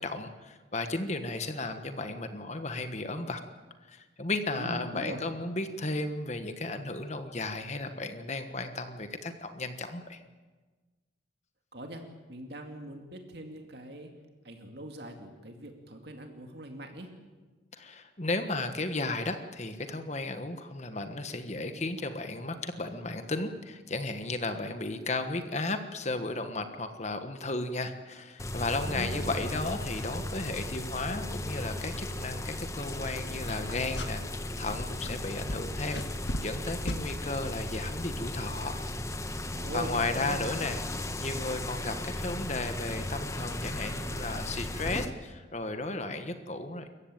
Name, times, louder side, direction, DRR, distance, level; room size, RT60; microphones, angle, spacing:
voice 1, 0.0-3.4 3.8-10.2 17.7-38.8 39.7-40.8 41.2-46.9, left 2 dB, 35° left, 8 dB, 1.4 m, -34 dB
voice 2, 4.5-5.2 11.7-12.0 12.3-14.1 14.4-17.1 28.8-29.5 39.6-40.4, right 1 dB, 60° right, 4 dB, 2.4 m, -41 dB
sound 1, 28.4-45.1, left 1 dB, 15° left, 1.2 m, -36 dB
sound 2, 33.5-34.4 34.6-36.6 36.9-37.1, left 1 dB, 70° left, 1.8 m, -37 dB
28.5 x 15.0 x 9.1 m, 1.3 s
head